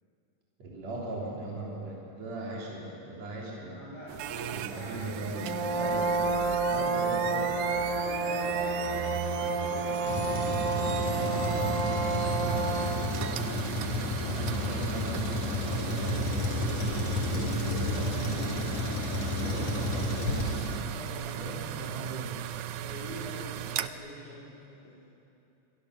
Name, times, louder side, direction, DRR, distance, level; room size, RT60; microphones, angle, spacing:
voice 1, 0.6-3.8 4.5-7.7 14.3-18.8 19.3-20.4 21.3-22.3, right 2 dB, 60° right, -4 dB, 4.6 m, -39 dB
voice 2, 3.6-5.0 5.7-5.8 7.8-12.3 12.5-13.7 17.3-20.0 20.7-22.1 22.7-25.1, equal, 75° left, -8 dB, 6.3 m, -45 dB
sound 1, 4.1-23.9, right 11 dB, 80° right, 2.2 m, -37 dB
Brass instrument, 5.3-13.1, right 3 dB, 10° left, 4.5 m, -30 dB
Truck, 10.1-21.2, left 2 dB, 60° left, 3.9 m, -32 dB
28.5 x 23.0 x 6.7 m, 2.7 s
omnidirectional pair, 3.5 m